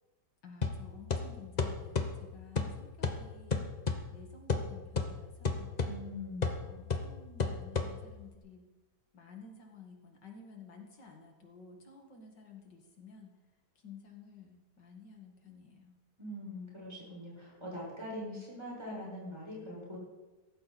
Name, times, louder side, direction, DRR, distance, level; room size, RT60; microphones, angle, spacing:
voice 1, 0.4-3.6 4.1-5.8 6.6-8.7 9.1-13.3 13.8-15.9, left 5 dB, 80° left, 2 dB, 2.9 m, -53 dB
sound 1, 0.6-8.3, left 4 dB, 30° left, 0.9 m, -35 dB
voice 2, 5.9-6.6 16.2-20.0, left 1 dB, 15° right, -5 dB, 7.2 m, -42 dB
17.0 x 15.0 x 4.3 m, 1.2 s
omnidirectional pair, 1.9 m